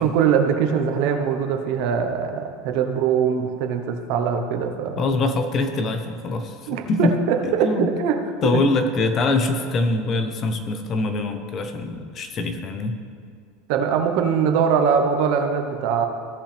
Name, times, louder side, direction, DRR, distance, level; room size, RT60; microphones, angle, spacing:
voice 1, 0.0-5.2 6.7-8.2 8.5-8.6 13.7-16.1, right 7 dB, 65° right, 5 dB, 1.0 m, -22 dB
voice 2, 5.0-7.1 7.4-7.9 8.4-13.0, left 3 dB, 35° left, 7 dB, 0.9 m, -24 dB
16.5 x 5.5 x 3.5 m, 2.2 s
supercardioid pair, 120°, 0 cm